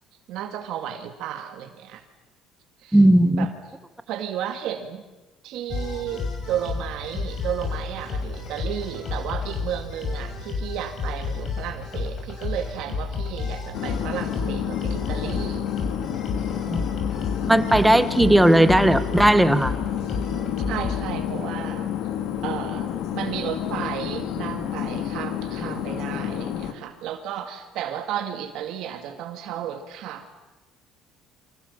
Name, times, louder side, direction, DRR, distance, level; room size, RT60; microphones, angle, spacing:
voice 1, 0.3-2.0 2.8-3.0 3.4-3.5 4.1-5.0 5.4-15.6 20.7-21.9 22.4-30.3, right 10 dB, 65° right, 6 dB, 2.2 m, -33 dB
voice 2, 2.9-3.5 16.7-16.9 17.5-19.7, right 1 dB, 5° right, 11 dB, 1.4 m, -17 dB
sound 1, 5.7-21.0, left 4 dB, 40° left, 6.6 m, -31 dB
sound 2, 13.7-26.7, left 10 dB, 70° left, 2.5 m, -30 dB
29.0 x 25.5 x 7.3 m, 1.2 s
cardioid pair, 145°, 0 cm